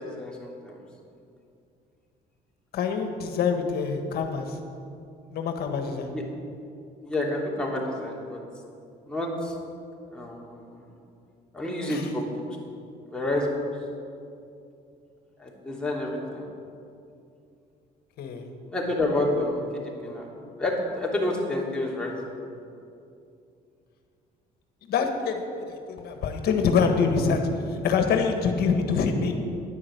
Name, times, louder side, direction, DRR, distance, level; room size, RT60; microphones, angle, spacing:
voice 1, 0.1-0.7 6.0-6.2 7.0-8.4 9.0-9.6 10.1-10.8 11.5-12.3 13.1-13.5 15.4-16.4 18.7-19.6 20.0-20.3 20.6-22.1, left 1 dB, 5° left, -4 dB, 3.0 m, -29 dB
voice 2, 2.7-4.6 5.3-6.1 11.9-12.1 18.2-18.5 24.8-27.4 27.7-29.3, left 5 dB, 70° left, 5 dB, 1.5 m, -25 dB
10.5 x 9.8 x 8.0 m, 2.6 s
cardioid pair, 110°, 17 cm